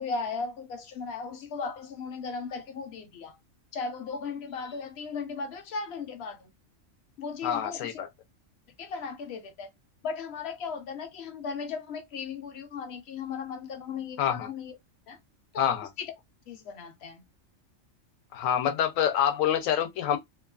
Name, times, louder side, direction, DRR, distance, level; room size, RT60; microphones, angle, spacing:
voice 1, 0.0-3.4 3.7-6.5 7.2-8.0 8.8-9.7 10.0-14.8 15.1-15.2 15.5-16.1 16.5-17.2, left 5 dB, 65° left, 0.8 m, -36 dB
voice 2, 7.4-8.1 14.2-14.5 15.6-15.9 18.3-20.2, left 9 dB, 85° left, 1.0 m, -26 dB
2.8 x 2.3 x 2.3 m
omnidirectional pair, 1.4 m